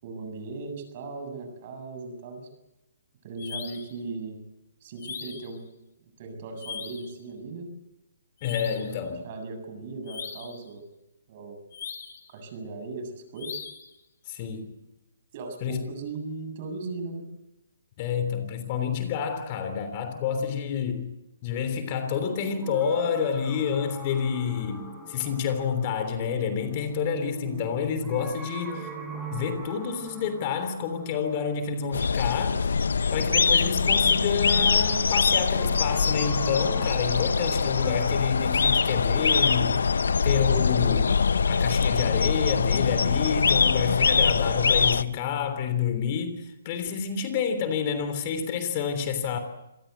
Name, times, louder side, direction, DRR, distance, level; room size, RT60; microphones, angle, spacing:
voice 1, 0.0-2.5 3.2-4.4 4.8-5.6 6.2-7.7 9.2-10.8 11.3-11.6 12.3-13.5 15.3-17.2, right 3 dB, 40° right, 7.3 m, -37 dB
sound 1, 3.4-3.9 5.0-5.6 6.6-7.1 8.4-9.0 10.1-10.6 11.7-12.3 13.4-13.9, left 7 dB, 55° left, 3.6 m, -39 dB
voice 2, 8.4-9.3 14.3-14.7 15.6-15.8 18.0-21.1 21.4-28.9 29.3-32.8 33.1-39.9 40.2-41.2 41.5-49.4, left 7 dB, 35° left, 3.3 m, -29 dB
sound 2, 21.9-32.8 34.9-38.2, right 2 dB, ahead, 7.2 m, -42 dB
sound 3, 31.9-45.0, left 5 dB, 75° left, 1.0 m, -23 dB
26.5 x 18.5 x 8.1 m
hypercardioid pair, 145°, 0 cm